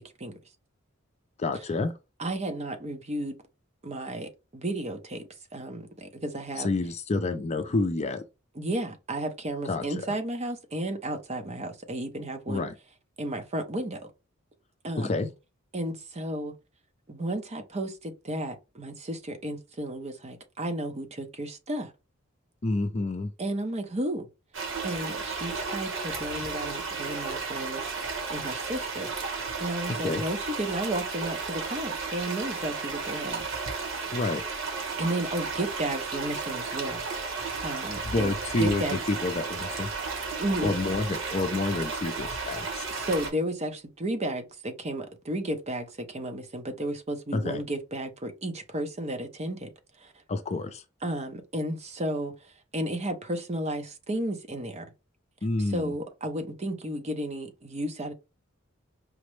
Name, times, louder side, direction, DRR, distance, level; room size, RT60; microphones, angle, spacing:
voice 1, 1.4-1.9 6.6-8.2 9.7-9.8 12.5-12.7 15.0-15.3 22.6-23.3 30.0-30.2 34.1-34.4 38.0-39.9 40.6-42.9 47.3-47.6 50.3-50.8 55.4-55.9, left 3 dB, 30° left, 0.4 m, -28 dB
voice 2, 2.2-3.4 3.8-5.2 5.5-6.7 8.6-12.7 13.2-14.0 14.8-15.2 15.7-16.5 17.1-21.9 23.4-24.3 24.8-27.8 28.3-29.1 29.6-33.4 35.0-37.0 37.6-39.0 40.4-40.7 42.9-49.7 50.0-50.1 51.0-54.9 55.7-58.1, right 1 dB, 30° right, 0.7 m, -33 dB
sound 1, 24.5-43.3, right 4 dB, 70° right, 1.2 m, -33 dB
5.0 x 2.1 x 3.1 m
head